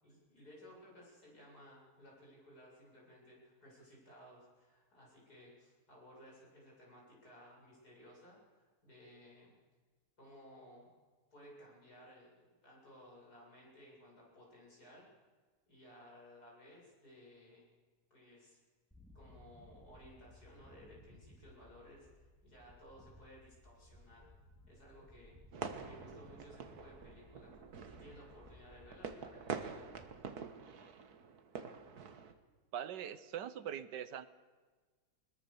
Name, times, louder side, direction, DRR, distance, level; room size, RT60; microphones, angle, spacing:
voice 1, 0.0-9.5 10.2-10.9 11.3-15.1 15.7-17.6 18.1-18.6 19.1-24.3 24.7-25.4 25.8-27.5 27.9-29.8, equal, 60° left, -3 dB, 8.3 m, -58 dB
sound 1, 18.9-30.1, left 1 dB, ahead, 2.6 m, -60 dB
sound 2, 25.5-32.3, right 6 dB, 65° right, 1.8 m, -46 dB
voice 2, 32.7-34.3, right 9 dB, 80° right, 14 dB, 1.6 m, -42 dB
21.5 x 21.0 x 7.0 m, 1.4 s
omnidirectional pair, 1.8 m